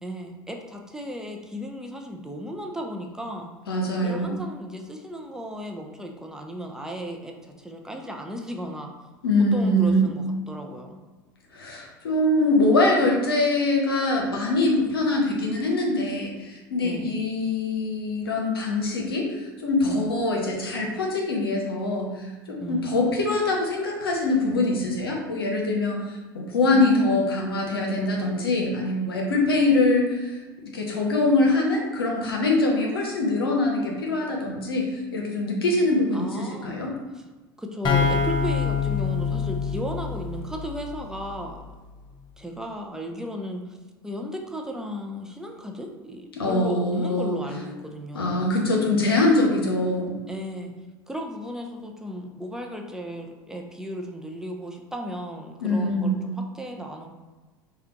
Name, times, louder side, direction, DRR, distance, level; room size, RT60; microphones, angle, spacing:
voice 1, 0.0-3.5 4.0-8.9 9.5-11.0 16.8-17.2 19.8-20.2 22.6-23.0 26.7-27.3 36.1-36.8 37.6-41.6 42.4-43.8 44.0-48.5 50.3-50.7 51.1-57.1, equal, 5° right, 1 dB, 0.5 m, -35 dB
voice 2, 3.7-4.4 9.2-10.1 11.5-30.4 30.7-36.9 46.4-47.4 48.1-50.2 55.6-56.1, left 2 dB, 85° left, 0 dB, 0.8 m, -23 dB
sound 1, 37.8-41.5, left 5 dB, 40° left, 0.7 m, -26 dB
4.9 x 2.3 x 2.9 m, 1.3 s
hypercardioid pair, 80°, 12 cm